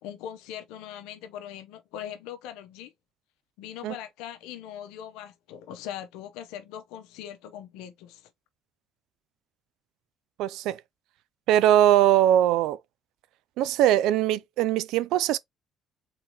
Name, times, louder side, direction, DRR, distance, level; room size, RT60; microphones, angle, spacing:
voice 1, 0.0-2.9 3.6-8.3, left 10 dB, 90° left, 0.8 m, -40 dB
voice 2, 10.4-10.8 11.5-12.8 13.6-15.4, right 12 dB, 80° right, 0.4 m, -21 dB
4.1 x 3.8 x 3.0 m
supercardioid pair, 80°, 0 cm